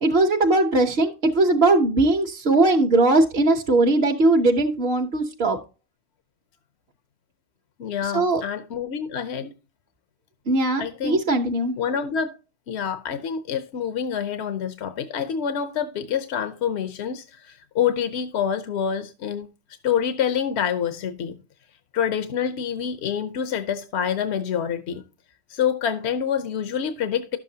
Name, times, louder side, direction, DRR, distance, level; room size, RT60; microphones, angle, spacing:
voice 1, 0.0-5.6 8.0-8.4 10.5-11.8, right 2 dB, 65° right, 1.2 m, -20 dB
voice 2, 7.8-9.5 10.8-11.2 11.8-12.4 12.7-19.5 19.8-21.4 21.9-25.0 25.5-27.4, left 8 dB, 85° left, 1.0 m, -27 dB
11.5 x 7.4 x 2.7 m
omnidirectional pair, 1.1 m